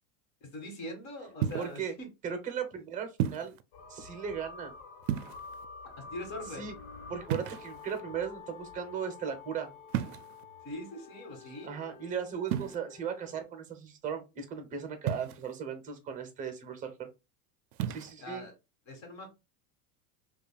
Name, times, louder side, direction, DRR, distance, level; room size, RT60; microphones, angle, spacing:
voice 1, 0.4-2.1 6.0-6.7 10.6-11.8 18.2-18.5 18.9-19.3, left 1 dB, 40° left, 3 dB, 1.7 m, -42 dB
sound 1, 1.4-1.8 3.2-3.6 5.0-5.7 7.3-8.0 9.9-10.4 12.5-12.8 15.1-15.6 17.7-18.1, right 10 dB, 85° right, 0.5 m, -33 dB
voice 2, 1.6-1.9 2.2-3.6 3.9-4.7 6.5-6.7 7.1-9.7 11.6-17.1 17.9-18.5, right 7 dB, 20° right, 8 dB, 0.7 m, -37 dB
sound 2, 3.7-13.4, left 5 dB, 75° left, 1.2 m, -49 dB
5.1 x 2.4 x 2.2 m, 0.25 s
supercardioid pair, 150°, 42 cm